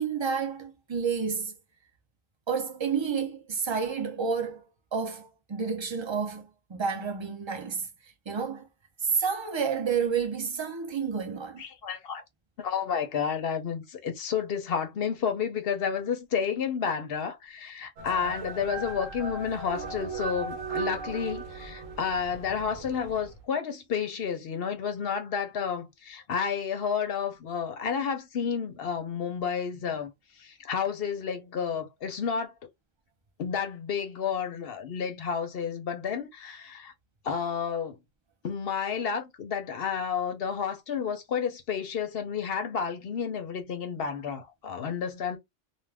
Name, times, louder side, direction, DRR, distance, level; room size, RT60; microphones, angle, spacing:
voice 1, 0.0-1.5 2.5-4.6 4.9-6.4 6.7-7.9 8.3-8.6 9.0-11.6, right 6 dB, 35° right, 0.4 m, -30 dB
voice 2, 11.6-12.2 12.6-30.1 30.4-32.5 33.4-36.9 37.2-38.0 38.4-45.4, left 7 dB, 55° left, 0.7 m, -31 dB
sound 1, 18.0-23.4, right 4 dB, 75° right, 1.1 m, -37 dB
2.4 x 2.2 x 3.3 m
omnidirectional pair, 1.4 m